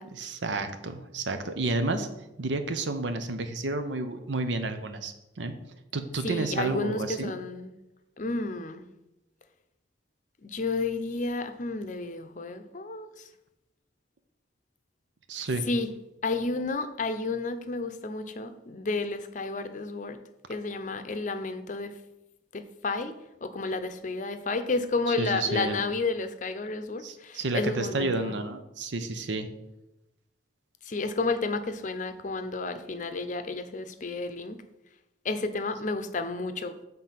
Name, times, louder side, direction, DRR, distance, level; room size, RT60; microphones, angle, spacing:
voice 1, 0.1-2.1 2.4-5.5 5.9-7.3 15.3-15.6 25.2-25.8 27.0-29.5, right 2 dB, 85° right, 8 dB, 0.7 m, -31 dB
voice 2, 6.2-7.7 8.2-8.8 10.4-13.3 15.7-15.9 16.2-20.2 20.5-22.0 22.5-23.1 23.4-28.4 30.9-34.6 35.2-36.9, left 3 dB, 45° left, 9 dB, 0.6 m, -31 dB
7.5 x 3.8 x 5.8 m, 0.95 s
head